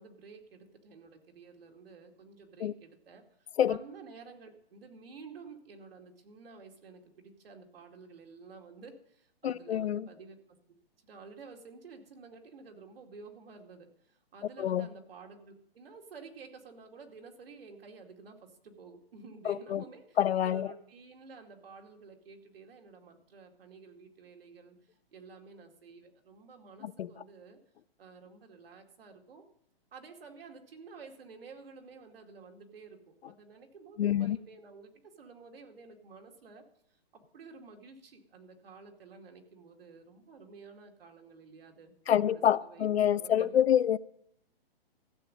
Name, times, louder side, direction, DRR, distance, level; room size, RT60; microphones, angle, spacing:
voice 1, 0.0-10.6 11.0-27.6 28.0-29.4 29.9-43.6, right 4 dB, 70° right, 2.4 m, -51 dB
voice 2, 9.4-10.1 14.6-14.9 19.5-19.8 20.2-20.7 26.8-27.1 34.0-34.4 42.1-44.0, left 10 dB, 90° left, 0.7 m, -27 dB
14.5 x 7.0 x 7.4 m
hypercardioid pair, 170°, 30 cm